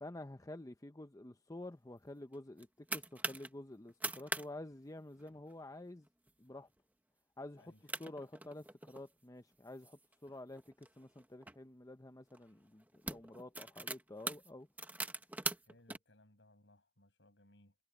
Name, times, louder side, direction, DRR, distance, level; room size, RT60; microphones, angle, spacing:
voice 1, 0.0-6.1 6.4-6.7 7.4-7.7 8.0-14.7, left 1 dB, 20° left, 0.7 m, -50 dB
sound 1, 2.3-3.5 3.9-4.5 4.7-4.8 5.2-5.5 6.1-6.3 6.8-6.9 7.6-7.7 7.9-9.1 9.7-11.6 12.3-12.5 12.8-16.0, right 2 dB, 10° right, 1.3 m, -42 dB
voice 2, 15.7-17.8, left 1 dB, 75° left, 6.6 m, -65 dB
head